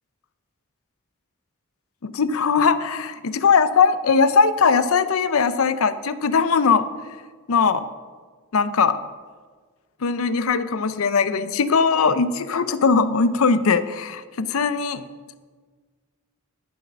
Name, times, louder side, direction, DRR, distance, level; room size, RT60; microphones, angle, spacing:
voice 1, 2.0-6.9 7.5-7.9 8.5-9.0 10.0-15.1, left 5 dB, 75° left, 13 dB, 0.5 m, -20 dB
11.0 x 6.6 x 6.2 m, 1.5 s
head